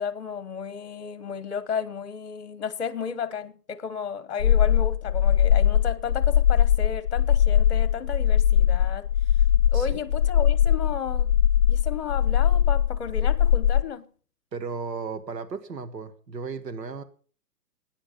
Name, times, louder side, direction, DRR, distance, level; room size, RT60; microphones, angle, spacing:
voice 1, 0.0-9.1 9.7-11.3 11.7-14.1, left 6 dB, 40° left, 1.3 m, -33 dB
sound 1, 4.4-13.8, left 10 dB, 70° left, 0.7 m, -21 dB
voice 2, 14.5-17.0, right 5 dB, 75° right, 2.0 m, -35 dB
19.0 x 10.0 x 5.2 m
hypercardioid pair, 175°, 50 cm